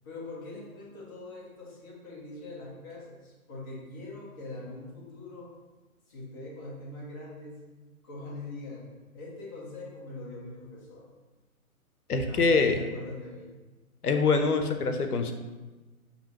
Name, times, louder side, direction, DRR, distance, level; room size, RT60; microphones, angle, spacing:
voice 1, 0.0-5.5 6.1-7.6 8.0-11.1 12.1-13.5, left 2 dB, 15° left, -4 dB, 0.5 m, -42 dB
voice 2, 12.1-12.8 14.0-15.3, left 4 dB, 90° left, 7 dB, 0.7 m, -24 dB
6.5 x 2.7 x 2.9 m, 1.2 s
figure-of-eight pair, 130°, 44 cm